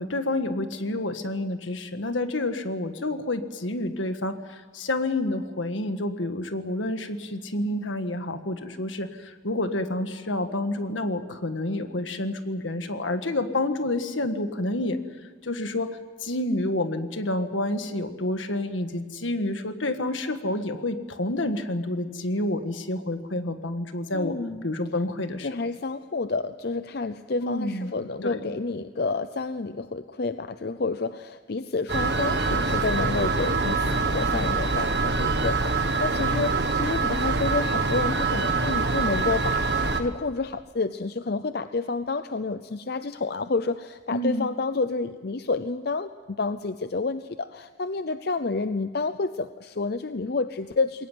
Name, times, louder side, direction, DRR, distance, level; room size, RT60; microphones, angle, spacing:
voice 1, 0.0-15.0 15.4-24.4 24.6-25.5 27.4-27.9 28.2-28.4 44.1-44.5, left 1 dB, 80° left, 8 dB, 1.6 m, -29 dB
voice 2, 24.1-24.7 25.4-51.1, left 3 dB, 55° left, 11 dB, 0.6 m, -29 dB
sound 1, 31.9-40.0, right 3 dB, 60° right, 1.6 m, -25 dB
21.5 x 18.5 x 9.3 m, 1.5 s
head